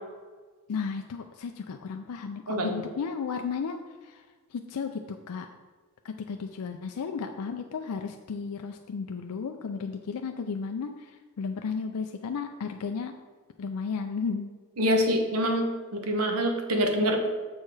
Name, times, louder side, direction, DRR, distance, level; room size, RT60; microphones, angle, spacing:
voice 1, 0.7-3.8 4.0-4.2 4.5-5.0 5.3-5.5 6.0-13.1 13.6-14.5, left 5 dB, 90° left, 5 dB, 0.4 m, -34 dB
voice 2, 2.5-2.8 14.8-17.3, equal, 75° right, 4 dB, 1.0 m, -26 dB
7.3 x 4.6 x 4.7 m, 1.4 s
head